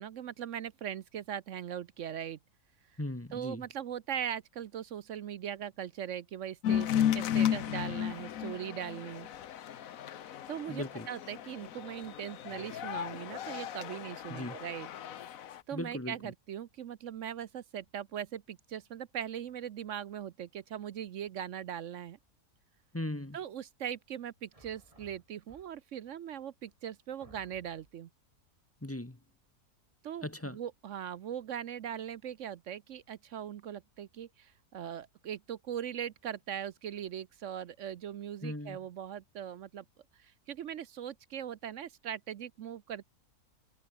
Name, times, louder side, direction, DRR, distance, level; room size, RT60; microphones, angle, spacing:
voice 1, 0.0-2.4 3.3-9.3 10.5-14.9 15.7-22.2 23.3-28.1 30.0-39.8 40.2-43.0, right 9 dB, 60° right, 0.9 m, -40 dB
voice 2, 3.0-3.6 10.7-11.1 14.3-14.5 15.7-16.2 22.9-23.4 28.8-29.2 30.2-30.6 38.4-38.8, left 1 dB, 10° left, 1.0 m, -38 dB
sound 1, 6.6-15.6, left 10 dB, 60° left, 1.2 m, -34 dB
sound 2, 24.5-26.0 26.7-26.8 27.2-28.0, right 1 dB, 20° right, 3.4 m, -59 dB
omnidirectional pair, 1.7 m